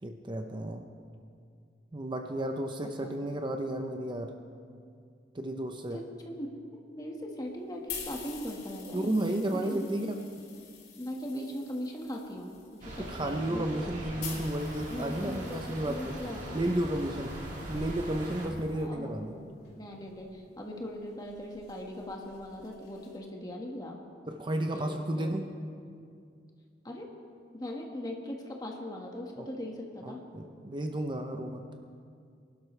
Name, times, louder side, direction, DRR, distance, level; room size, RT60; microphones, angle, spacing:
voice 1, 0.0-0.9 1.9-4.3 5.3-6.0 8.9-10.2 13.0-16.2 16.5-17.4 17.7-19.3 24.3-25.4 29.4-29.5 30.0-31.7, right 1 dB, 30° right, 4 dB, 0.7 m, -32 dB
voice 2, 5.9-6.5 6.9-9.1 9.6-10.1 11.0-13.9 14.9-15.6 15.9-16.8 18.5-24.0 24.7-25.3 26.8-27.1 27.5-30.2, left 1 dB, 20° left, 0 dB, 1.6 m, -40 dB
sound 1, 7.5-18.8 19.6-23.2, left 5 dB, 65° left, 4.1 m, -48 dB
sound 2, 12.8-18.5, right 1 dB, 45° right, 2.5 m, -41 dB
24.0 x 12.0 x 3.3 m, 2.3 s
head